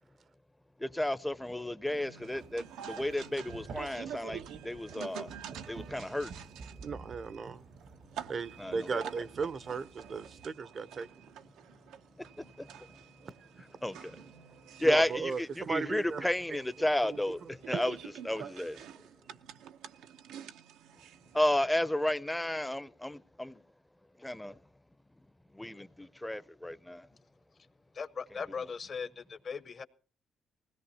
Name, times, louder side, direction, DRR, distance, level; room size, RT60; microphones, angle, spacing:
voice 1, 0.8-5.4 5.7-6.3 8.6-9.1 12.2-13.0 13.6-14.2 14.8-18.8 21.3-23.6 24.2-24.6 25.5-27.1, left 1 dB, 10° left, 0.6 m, -33 dB
sound 1, 1.9-21.4, right 9 dB, 90° right, 0.7 m, -48 dB
sound 2, 2.3-10.5, right 5 dB, 65° right, 1.1 m, -51 dB
voice 2, 6.8-7.6 8.3-11.1 13.2-13.3 14.8-16.3 17.0-17.2 17.7-17.8, right 5 dB, 50° right, 0.6 m, -36 dB
voice 3, 27.9-29.8, left 5 dB, 45° left, 0.8 m, -39 dB
19.5 x 17.0 x 2.8 m
cardioid pair, 90°, 0 cm